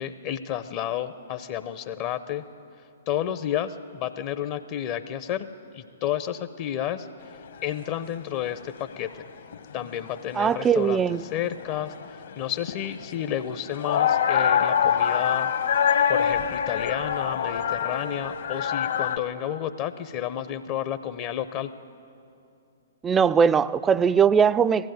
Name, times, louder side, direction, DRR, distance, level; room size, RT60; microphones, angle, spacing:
voice 1, 0.0-2.4 3.1-5.5 5.7-7.1 7.6-9.2 9.7-15.5 16.1-21.7, left 10 dB, 40° left, 0.7 m, -31 dB
sound 1, 7.2-7.3 7.6-7.7 8.0-8.4 8.8-10.2 10.6-19.2, left 8 dB, 65° left, 1.4 m, -26 dB
voice 2, 10.4-11.2 23.0-24.9, right 7 dB, 15° right, 0.4 m, -20 dB
19.5 x 15.5 x 9.3 m
figure-of-eight pair, 120°, 0 cm